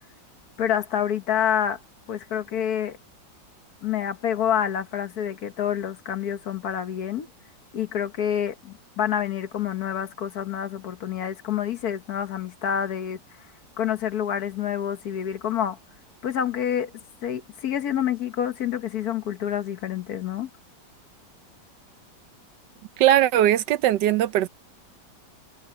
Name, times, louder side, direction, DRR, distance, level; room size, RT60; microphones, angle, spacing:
voice 1, 0.6-1.8 2.1-3.0 3.8-7.3 7.7-13.2 13.8-15.8 16.2-20.5, left 9 dB, 60° left, 1.4 m, -27 dB
voice 2, 23.0-24.5, right 12 dB, 75° right, 1.2 m, -19 dB
omnidirectional pair, 2.0 m